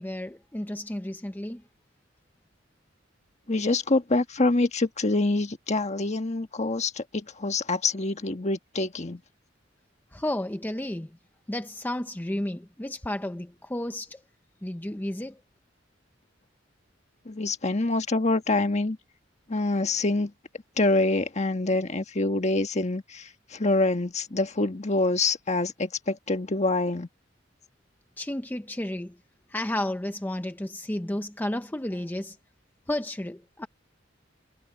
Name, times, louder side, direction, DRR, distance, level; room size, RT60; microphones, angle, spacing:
voice 1, 0.0-1.6 10.1-11.1 11.5-14.1 14.6-15.3 28.2-29.1 29.5-32.3 32.9-33.7, left 1 dB, 10° left, 0.7 m, -32 dB
voice 2, 3.5-9.2 17.3-19.0 19.5-20.3 20.8-23.2 23.5-27.1, left 2 dB, 35° left, 1.5 m, -26 dB
head